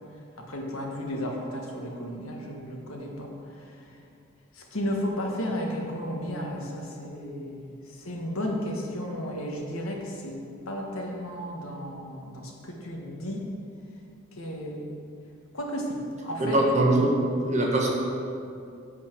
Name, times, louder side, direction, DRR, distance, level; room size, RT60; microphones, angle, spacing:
voice 1, 0.4-3.7 4.5-13.4 14.3-15.0 15.5-16.6, equal, 80° left, 0 dB, 1.5 m, -34 dB
voice 2, 16.4-17.2 17.4-17.9, right 1 dB, 35° right, -2 dB, 1.4 m, -22 dB
10.5 x 4.4 x 7.6 m, 2.5 s
head